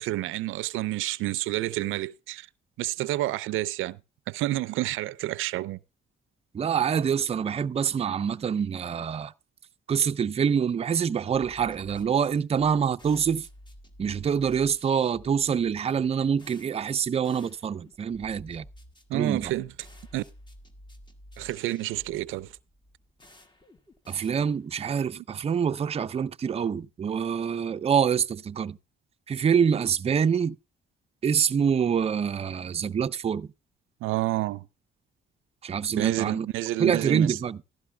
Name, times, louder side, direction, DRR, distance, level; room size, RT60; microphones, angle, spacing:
voice 1, 0.0-2.5 2.8-4.0 4.3-5.8 19.1-19.7 20.1-20.2 21.4-22.5 34.0-34.7 36.0-37.4, right 16 dB, 90° right, 0.5 m, -29 dB
voice 2, 6.5-9.3 9.9-13.5 14.0-18.6 19.1-19.5 24.1-28.8 29.3-30.6 31.2-33.5 35.6-36.5 36.8-37.6, right 7 dB, 30° right, 0.4 m, -26 dB
sound 1, 11.3-24.9, equal, 20° left, 1.4 m, -52 dB
15.5 x 12.5 x 2.2 m
cardioid pair, 90°, 20 cm